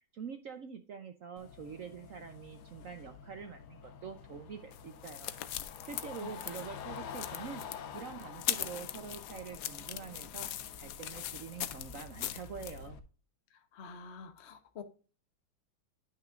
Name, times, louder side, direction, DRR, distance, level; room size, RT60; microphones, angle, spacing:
voice 1, 0.0-5.3 5.8-13.0, right 7 dB, 65° right, 7 dB, 0.8 m, -46 dB
sound 1, 1.4-13.0, left 7 dB, 65° left, 1.2 m, -48 dB
sound 2, 4.7-12.8, left 12 dB, 90° left, 0.7 m, -40 dB
voice 2, 13.5-14.8, left 5 dB, 45° left, 7 dB, 0.9 m, -48 dB
10.0 x 6.0 x 2.5 m, 0.36 s
omnidirectional pair, 2.2 m